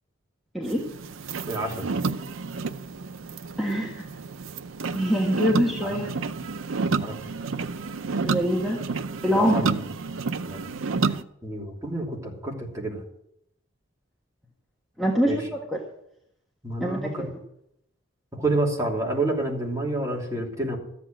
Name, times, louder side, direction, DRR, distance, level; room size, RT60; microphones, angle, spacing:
voice 1, 0.5-0.9 3.6-4.0 4.9-6.1 8.2-8.8 9.2-9.7 15.0-15.8 16.8-17.3, equal, ahead, -2 dB, 1.5 m, -24 dB
sound 1, 0.6-11.2, right 4 dB, 85° right, 0.6 m, -30 dB
voice 2, 1.5-1.9 5.8-6.0 6.9-7.1 9.3-9.8 10.5-10.6 10.9-11.2 11.4-13.0 15.2-15.4 16.6-17.3 18.3-20.8, right 2 dB, 15° right, -2 dB, 3.0 m, -29 dB
14.0 x 8.3 x 7.5 m, 0.77 s
head